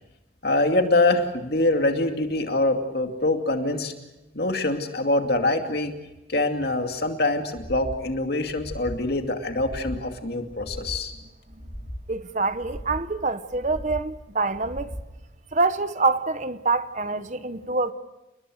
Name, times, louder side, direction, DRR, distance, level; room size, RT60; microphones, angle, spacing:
voice 1, 0.4-3.9 4.3-6.0 6.3-11.1, left 2 dB, 55° left, 2.5 m, -24 dB
sound 1, 7.5-8.0 8.4-9.0 9.4-10.0 10.4-11.0 11.5-12.1 12.5-13.1 13.5-14.1 14.5-15.1, equal, 25° left, 3.3 m, -38 dB
voice 2, 12.1-14.9 15.5-17.9, right 3 dB, 40° right, 0.9 m, -25 dB
29.5 x 20.5 x 6.4 m
head